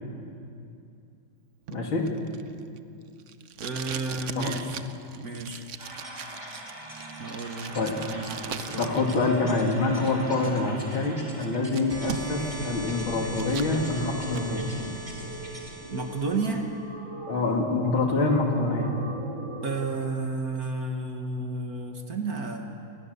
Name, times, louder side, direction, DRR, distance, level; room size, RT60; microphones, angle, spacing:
voice 1, 1.7-2.1 4.4-4.5 7.8-8.0 8.8-14.8 17.3-19.0, left 3 dB, 70° left, 1 dB, 3.6 m, -26 dB
Packing tape duct tape, 1.7-9.2 9.5-10.5 11.0-11.1 11.4-12.6 12.9-13.7 14.1-14.5, right 8 dB, 75° right, 0.7 m, -40 dB
voice 2, 3.6-4.8 5.2-5.6 7.2-9.2 15.9-16.7 19.6-22.6, right 3 dB, 45° right, 4 dB, 1.8 m, -32 dB
sound 1, 5.8-19.8, right 1 dB, 20° right, 3.3 m, -39 dB
26.5 x 20.0 x 6.8 m, 2.6 s
omnidirectional pair, 2.3 m